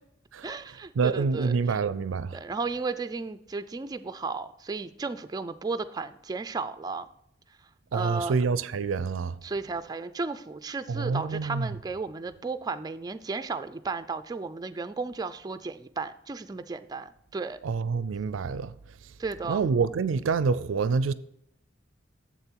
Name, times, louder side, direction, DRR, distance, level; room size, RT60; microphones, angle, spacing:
voice 1, 0.4-1.8 2.3-7.1 7.9-8.3 9.4-17.6 19.2-19.7, right 4 dB, 20° right, 0.3 m, -34 dB
voice 2, 1.0-2.4 7.9-9.4 10.9-11.7 17.6-18.7 19.5-21.1, right 5 dB, 90° right, 0.4 m, -27 dB
7.3 x 6.8 x 4.5 m
head